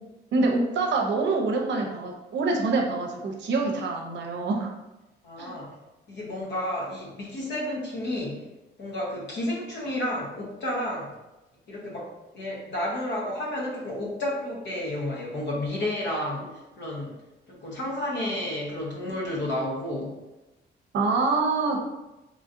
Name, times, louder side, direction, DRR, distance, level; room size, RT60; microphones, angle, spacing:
voice 1, 0.3-4.7 5.4-5.6 20.9-21.8, right 3 dB, 65° right, 1 dB, 0.6 m, -25 dB
voice 2, 5.2-5.7 6.1-8.4 8.8-11.1 11.7-12.1 12.3-16.5 16.8-17.2 17.5-20.2, left 1 dB, 65° left, -3 dB, 1.0 m, -31 dB
3.0 x 2.6 x 2.5 m, 1.0 s
cardioid pair, 90°, 20 cm